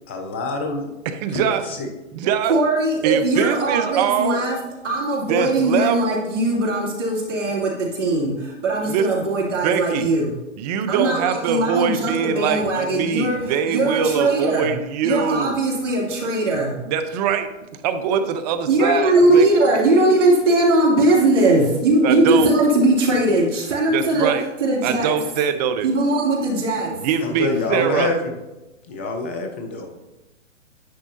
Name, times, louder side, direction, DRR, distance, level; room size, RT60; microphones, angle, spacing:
voice 1, 0.1-0.9 1.3-1.4 1.7-1.9 27.2-28.1 28.9-29.9, left 3 dB, 10° left, 4 dB, 0.3 m, -26 dB
voice 2, 1.0-1.6 2.1-2.5 3.0-4.4 5.3-6.0 8.8-9.1 9.6-10.1 10.6-15.6 16.9-17.5 17.8-19.5 22.0-22.5 23.9-24.4 24.8-25.9 26.9-28.1, right 7 dB, 30° right, 9 dB, 0.8 m, -22 dB
voice 3, 2.5-4.6 4.8-10.3 10.9-14.7 15.0-16.8 18.7-24.3 24.6-25.1 25.8-27.1, right 2 dB, 70° right, -2 dB, 2.8 m, -20 dB
10.5 x 8.4 x 2.7 m, 0.99 s
hypercardioid pair, 135°, 38 cm